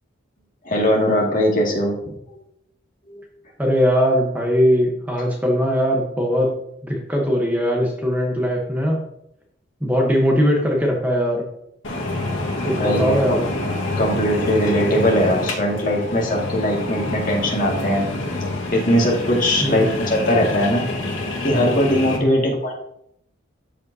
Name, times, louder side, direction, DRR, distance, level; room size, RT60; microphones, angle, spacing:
voice 1, 0.6-2.4 3.1-3.2 12.7-13.2 14.0-18.1 18.7-20.9 21.4-22.7, equal, 40° left, -1 dB, 2.0 m, -20 dB
voice 2, 3.6-6.6 6.8-9.0 9.8-11.5 12.6-13.5 19.6-19.9 22.2-22.4, equal, 10° right, 0 dB, 1.0 m, -20 dB
sound 1, 11.8-22.2, left 2 dB, 75° left, 1.6 m, -27 dB
13.0 x 5.1 x 2.7 m, 0.74 s
head